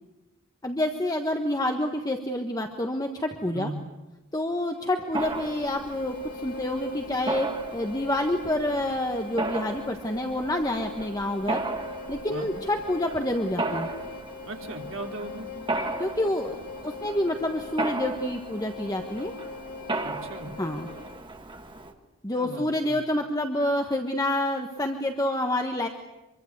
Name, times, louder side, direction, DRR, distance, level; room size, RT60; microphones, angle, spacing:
voice 1, 0.6-3.7 4.3-11.6 12.1-13.9 15.8-16.6 16.8-19.3 20.6-20.9 22.2-25.9, left 1 dB, 15° left, 4 dB, 1.4 m, -28 dB
Bowed string instrument, 4.7-21.3, left 4 dB, 85° left, 6.1 m, -42 dB
Mechanisms, 5.1-21.9, right 2 dB, 20° right, 1.9 m, -36 dB
voice 2, 14.5-15.5 20.0-20.5 22.3-23.0, right 2 dB, 60° right, 2 dB, 3.3 m, -37 dB
25.5 x 24.0 x 8.2 m, 1.0 s
head